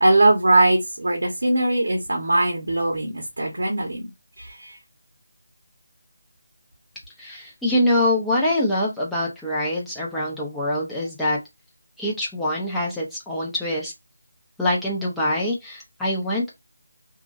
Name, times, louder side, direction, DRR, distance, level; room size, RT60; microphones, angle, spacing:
voice 1, 0.0-4.1 4.4-4.8, right 2 dB, 75° right, 1.1 m, -20 dB
voice 2, 7.2-11.4 12.0-13.9 14.6-16.5, left 1 dB, ahead, 0.8 m, -24 dB
2.9 x 2.5 x 2.5 m
figure-of-eight pair, 165°, 0 cm